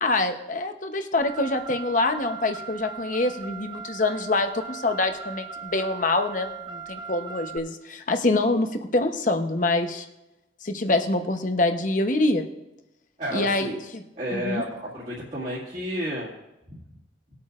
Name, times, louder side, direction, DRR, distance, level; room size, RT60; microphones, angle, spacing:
voice 1, 0.0-10.1 10.6-12.4 13.3-14.0 14.3-14.6, left 2 dB, 45° left, 6 dB, 0.9 m, -25 dB
Car, 1.2-7.6, right 6 dB, 25° right, 0.9 m, -39 dB
voice 2, 13.2-13.8 14.2-16.3, equal, 40° right, -9 dB, 2.1 m, -31 dB
19.5 x 8.5 x 2.5 m, 0.94 s
head